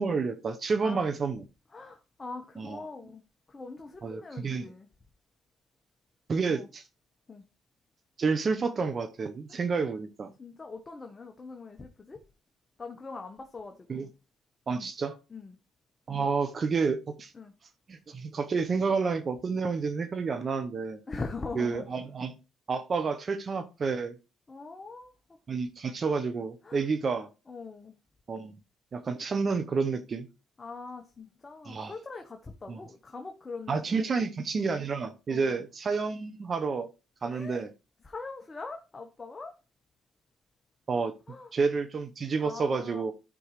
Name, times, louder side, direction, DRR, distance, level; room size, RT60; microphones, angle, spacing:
voice 1, 0.0-1.4 2.6-2.8 4.0-4.7 6.3-6.8 8.2-10.3 13.9-14.1 14.7-15.2 16.1-17.3 17.9-21.0 21.6-22.3 22.7-24.2 25.5-27.3 28.3-28.6 28.9-30.3 31.7-31.9 32.7-32.8 33.7-36.9 37.2-37.7 40.9-41.1 41.5-43.1, right 4 dB, 40° right, 0.9 m, -29 dB
voice 2, 1.7-3.2 3.5-4.9 6.5-6.7 7.3-7.4 9.5-9.6 10.4-12.2 12.8-14.1 14.8-14.9 15.3-15.6 17.3-17.5 21.1-21.9 24.5-25.4 26.6-26.8 27.5-27.9 30.6-34.3 35.3-35.6 37.3-37.7 38.0-39.5 41.3-41.5 42.4-43.1, left 3 dB, 30° left, 1.1 m, -42 dB
13.5 x 5.4 x 3.1 m
cardioid pair, 85°, 0 cm